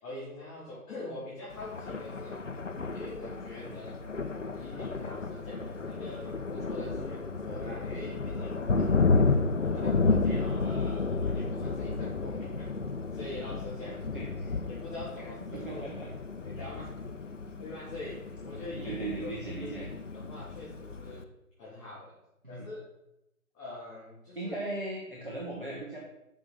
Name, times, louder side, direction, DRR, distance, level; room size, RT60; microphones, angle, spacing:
voice 1, 0.0-2.4 2.9-4.0 4.5-9.1 9.6-12.7 13.1-14.0 14.7-15.9 16.4-17.3 17.6-19.7 20.1-21.2 21.6-22.1 22.5-22.8 23.5-24.6 25.1-25.2, left 2 dB, 5° left, -25 dB, 2.1 m, -43 dB
Thunder, 1.5-21.2, left 3 dB, 55° left, 0.6 m, -32 dB
voice 2, 14.1-14.6 15.5-16.1 18.8-19.9 22.4-22.6 24.3-26.0, right 2 dB, 35° right, -4 dB, 1.0 m, -38 dB
6.4 x 5.3 x 4.5 m, 0.86 s
figure-of-eight pair, 170°, 45 cm